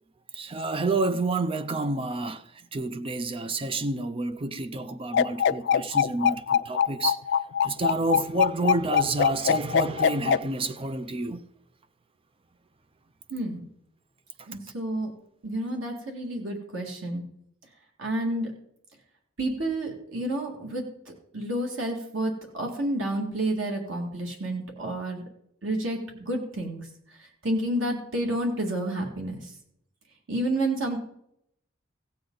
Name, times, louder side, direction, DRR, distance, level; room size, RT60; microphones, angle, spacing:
voice 1, 0.3-7.2 7.6-11.4 14.5-14.6, right 2 dB, 30° right, 0.4 m, -29 dB
sound 1, 5.1-10.4, left 8 dB, 65° left, 0.3 m, -22 dB
voice 2, 13.3-13.6 14.5-15.1 15.4-17.2 18.0-18.5 19.4-25.3 25.6-26.9 27.2-29.5 30.3-31.0, right 1 dB, 90° right, 2.1 m, -30 dB
16.0 x 7.8 x 3.9 m
head